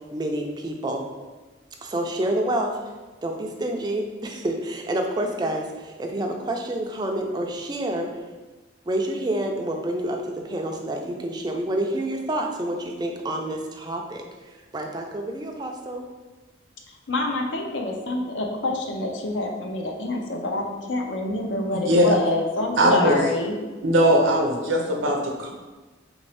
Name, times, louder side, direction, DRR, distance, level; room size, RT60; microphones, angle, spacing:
voice 1, 0.1-1.0 1.8-2.8 3.2-8.1 8.9-14.2 14.5-16.0, right 1 dB, 20° right, 2 dB, 0.3 m, -28 dB
voice 2, 17.1-23.5, left 2 dB, 70° left, 2 dB, 0.5 m, -27 dB
voice 3, 21.9-22.2 22.8-23.3 23.8-25.5, equal, 85° right, 1 dB, 0.7 m, -19 dB
3.7 x 2.6 x 3.3 m, 1.3 s
head